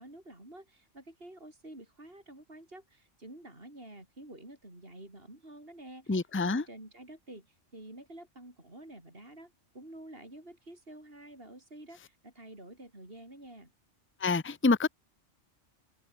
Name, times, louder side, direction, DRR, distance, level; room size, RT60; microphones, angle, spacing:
voice 1, 0.0-13.7, right 1 dB, 50° right, 7.1 m, -49 dB
voice 2, 6.1-6.6 14.2-14.9, left 3 dB, 10° left, 0.8 m, -27 dB
omnidirectional pair, 1.3 m